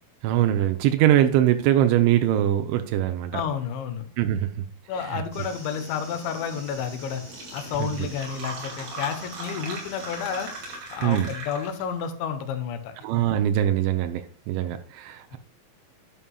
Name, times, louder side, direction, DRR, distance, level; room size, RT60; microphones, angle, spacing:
voice 1, 0.2-3.4 4.2-4.7 5.0-5.2 7.8-7.9 11.0-11.3 13.0-15.4, right 12 dB, 90° right, 7 dB, 3.1 m, -22 dB
voice 2, 3.3-4.1 4.9-7.2 7.5-10.5 10.9-12.9 15.3-15.4, left 7 dB, 80° left, 8 dB, 3.2 m, -30 dB
sound 1, 5.3-10.8, equal, 10° right, 3.3 m, -44 dB
Fill (with liquid), 6.9-7.0 7.2-11.9, right 3 dB, 55° right, 3.9 m, -38 dB
11.0 x 8.6 x 2.3 m, 0.42 s
omnidirectional pair, 5.2 m